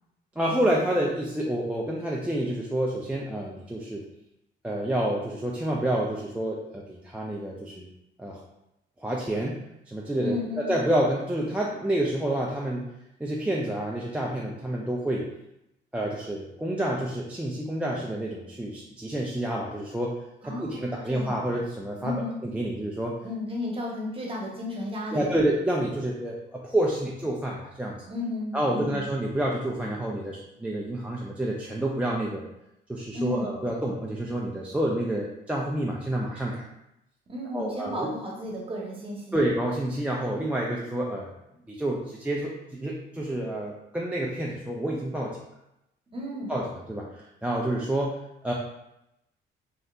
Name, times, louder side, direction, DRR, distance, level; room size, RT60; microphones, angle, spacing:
voice 1, 0.4-4.0 4.6-7.9 8.2-8.4 9.0-9.6 9.9-12.8 13.2-15.3 15.9-20.1 20.4-23.2 25.1-28.0 28.5-32.4 32.9-36.6 37.5-38.1 39.3-41.3 41.7-45.4 46.5-48.5, right 1 dB, 5° right, -3 dB, 0.4 m, -28 dB
voice 2, 10.2-10.7 20.4-21.4 22.0-22.4 23.2-25.4 28.1-29.1 33.1-33.6 37.3-39.4 46.1-46.6, left 1 dB, 25° right, -3 dB, 1.0 m, -33 dB
3.3 x 2.8 x 2.4 m, 0.85 s
cardioid pair, 90°, 20 cm